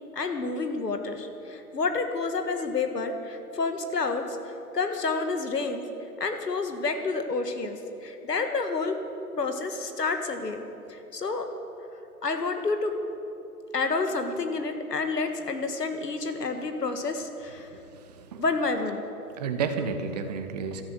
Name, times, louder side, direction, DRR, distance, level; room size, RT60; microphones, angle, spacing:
voice 1, 0.1-5.8 6.2-9.0 9.4-10.6 10.9-11.5 12.2-12.9 13.7-17.7 18.4-19.0, left 3 dB, 75° left, 6 dB, 1.7 m, -29 dB
voice 2, 17.7-18.4 19.3-20.8, right 5 dB, 25° right, 8 dB, 1.0 m, -32 dB
13.0 x 13.0 x 7.6 m, 2.9 s
figure-of-eight pair, 135°, 49 cm